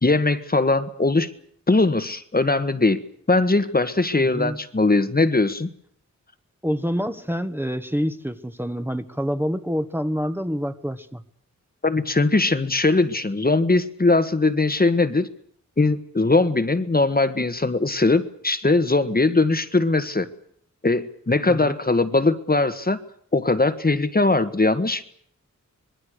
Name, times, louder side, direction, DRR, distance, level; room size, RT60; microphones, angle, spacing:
voice 1, 0.0-1.3 1.7-3.0 3.3-5.7 11.8-15.3 15.8-20.3 20.8-23.0 23.3-25.0, left 3 dB, 30° left, 10 dB, 1.7 m, -20 dB
voice 2, 4.2-4.6 6.6-11.2 21.5-21.8, equal, 5° right, 9 dB, 1.6 m, -27 dB
26.0 x 22.0 x 6.6 m, 0.62 s
wide cardioid pair, 95°, 30 cm